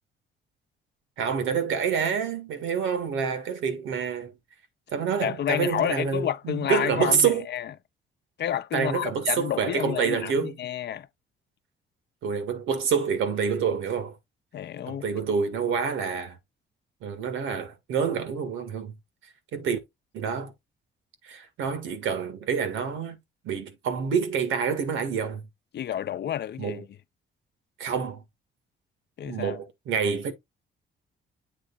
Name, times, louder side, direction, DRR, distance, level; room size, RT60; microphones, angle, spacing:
voice 1, 1.2-4.3 4.9-7.5 8.7-10.6 12.2-14.2 14.9-16.4 17.0-18.9 19.5-19.8 20.1-20.5 21.2-23.2 23.4-25.4 26.6-26.8 27.8-28.2 29.2-30.3, right 6 dB, 85° right, 1.9 m, -27 dB
voice 2, 5.2-7.7 8.4-11.1 14.5-15.0 25.7-26.9 29.2-29.6, left 10 dB, 60° left, 0.7 m, -30 dB
8.1 x 3.6 x 4.1 m
cardioid pair, 90°, 20 cm